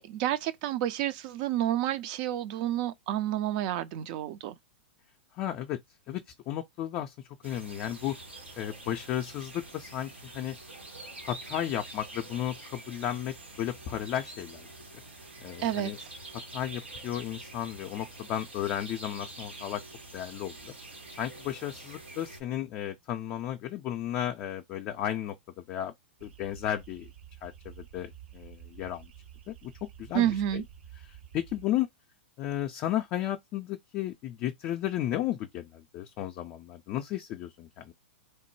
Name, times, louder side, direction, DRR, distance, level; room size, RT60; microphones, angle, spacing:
voice 1, 0.0-4.6 15.6-15.9 30.1-30.6, right 12 dB, 45° right, 0.3 m, -29 dB
voice 2, 5.4-5.8 6.1-7.1 7.4-8.2 8.6-10.6 11.2-14.7 15.4-16.0 16.5-19.8 20.1-20.7 21.2-25.3 25.7-25.9 26.2-27.1 27.4-29.1 29.5-29.7 30.0-30.6 31.3-31.9 32.4-37.9, left 12 dB, 35° left, 0.4 m, -34 dB
sound 1, 7.4-22.4, right 2 dB, 90° right, 1.1 m, -46 dB
sound 2, 26.2-31.6, right 10 dB, 65° right, 0.9 m, -50 dB
3.1 x 2.1 x 3.0 m
figure-of-eight pair, 105°, 6 cm